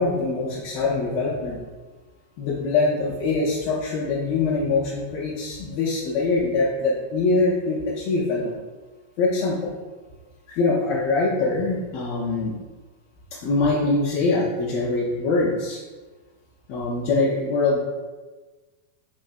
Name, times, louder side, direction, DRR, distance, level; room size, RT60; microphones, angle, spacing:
voice 1, 0.0-1.6 2.4-8.6 9.2-9.7 10.5-12.5 13.4-15.8 16.7-17.8, left 3 dB, 45° left, -5 dB, 0.4 m, -23 dB
3.1 x 2.6 x 2.2 m, 1.3 s
figure-of-eight pair, 90°, 0 cm